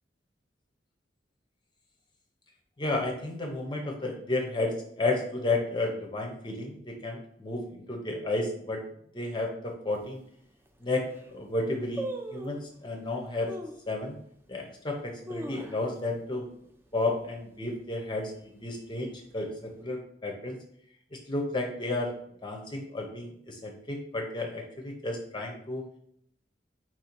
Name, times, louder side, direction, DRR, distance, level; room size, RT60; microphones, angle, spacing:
voice 1, 2.8-8.8 9.1-10.2 10.8-11.0 11.3-13.5 13.9-14.2 14.5-16.5 16.9-20.6 21.1-22.1 22.4-25.8, left 2 dB, 25° left, 1 dB, 0.6 m, -32 dB
sound 1, 9.9-10.0 10.7-10.8 11.0-11.4 12.0-12.7 13.5-13.9 14.4-14.5 15.0-16.1 16.4-16.5 16.9-17.2 17.6-18.0 18.6-19.4 19.7-19.8, right 1 dB, 15° right, 0.4 m, -39 dB
4.3 x 2.7 x 4.4 m, 0.68 s
head